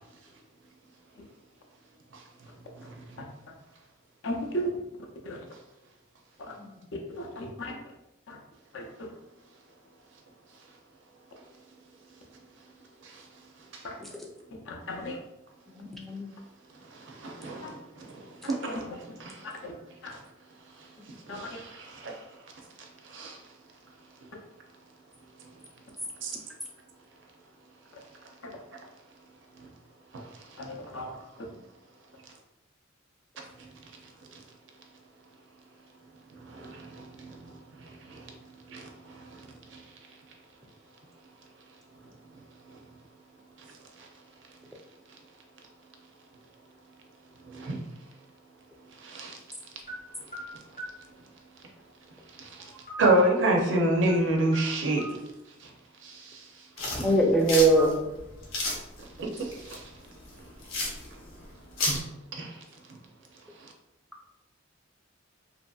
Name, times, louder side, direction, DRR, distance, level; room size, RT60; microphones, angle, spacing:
voice 1, 2.1-3.2 13.0-13.3 13.6-13.9 16.7-19.5 20.7-22.5 22.8-23.4 25.4-25.5 26.2-26.4 28.2-28.3 28.7-28.9 29.6-29.7 30.1-30.6 33.6-34.4 36.3-38.4 38.7-39.8 42.0-42.1 42.7-42.8 43.6-44.1 47.4-47.8 48.9-49.4 50.2-50.8 52.3-52.7 53.0-55.2 55.6-55.7 56.0-57.0 59.0-59.8 61.9-62.0 62.3-63.0 63.6-63.7, right 1 dB, 60° right, 0.5 m, -31 dB
voice 2, 4.2-4.7 5.2-5.4 6.4-6.5 7.1-7.7 8.3-8.4 8.7-9.1 13.8-14.0 14.6-15.2 17.6-17.7 18.6-18.8 19.6-19.7 20.0-20.2 21.3-21.6 27.9-28.0 30.6-31.2, equal, 60° left, 0.5 m, -35 dB
voice 3, 15.7-16.3 57.0-58.0, right 2 dB, ahead, 0.3 m, -23 dB
sound 1, 49.9-51.0 52.6-53.5 53.9-54.2 54.5-55.2, right 1 dB, 35° left, 0.8 m, -42 dB
sound 2, 56.8-62.0, left 2 dB, 85° left, 0.8 m, -33 dB
2.8 x 2.6 x 2.3 m
head